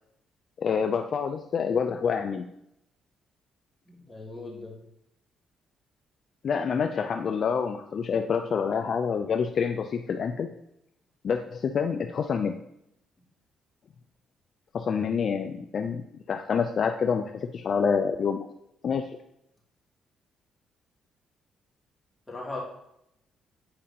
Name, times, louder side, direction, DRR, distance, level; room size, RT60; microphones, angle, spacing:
voice 1, 0.6-2.5 6.4-10.5 11.2-12.5 14.7-18.5 18.8-19.0, left 6 dB, 55° left, 6 dB, 0.4 m, -27 dB
voice 2, 3.9-4.8 22.3-22.6, left 2 dB, 15° left, -5 dB, 2.6 m, -38 dB
8.6 x 5.0 x 2.8 m, 0.79 s
cardioid pair, 90°, 0 cm